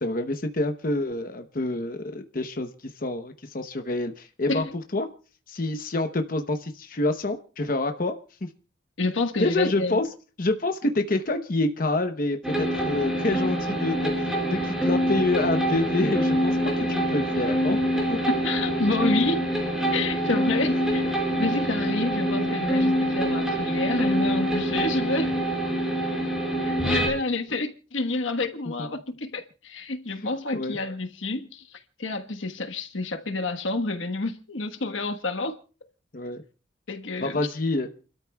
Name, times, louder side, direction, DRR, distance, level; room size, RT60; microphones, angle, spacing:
voice 1, 0.0-4.6 4.9-5.1 5.5-8.2 8.4-8.5 9.4-10.1 10.4-17.8 18.1-18.2 20.6-20.7 30.5-30.8 36.1-36.4 37.2-37.9, left 2 dB, 45° left, 0.9 m, -27 dB
voice 2, 9.0-10.0 18.3-19.5 19.9-21.1 21.4-25.3 26.6-35.6 36.9-37.4, left 3 dB, 80° left, 1.3 m, -29 dB
sound 1, 12.4-27.1, equal, 5° right, 4.8 m, -25 dB
29.5 x 13.0 x 2.3 m
head